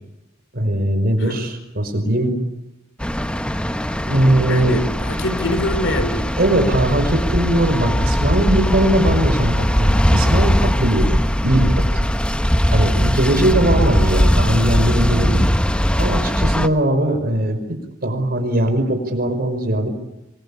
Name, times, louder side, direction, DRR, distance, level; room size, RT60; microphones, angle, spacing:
voice 1, 0.5-2.4 4.1-4.8 6.4-11.2 11.4-12.1 12.7-15.5 16.0-17.6 18.0-19.9, right 1 dB, 50° right, 6 dB, 5.2 m, -19 dB
sound 1, 3.0-16.7, equal, 5° left, 0.9 m, -19 dB
voice 2, 4.5-6.4 13.4-13.6, left 1 dB, 70° left, 11 dB, 3.4 m, -25 dB
26.0 x 22.0 x 8.6 m, 0.95 s
head